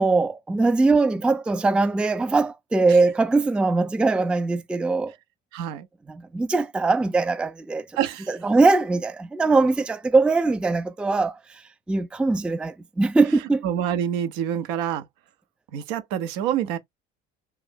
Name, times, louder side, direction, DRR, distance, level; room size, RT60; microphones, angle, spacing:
voice 1, 0.0-5.1 6.1-7.9 8.3-11.6 11.9-13.6, right 3 dB, 5° right, 0.4 m, -21 dB
voice 2, 5.5-5.9 8.0-8.3 13.6-15.1 15.7-16.8, right 10 dB, 70° right, 0.8 m, -27 dB
3.3 x 2.6 x 3.5 m
hypercardioid pair, 65°, 37 cm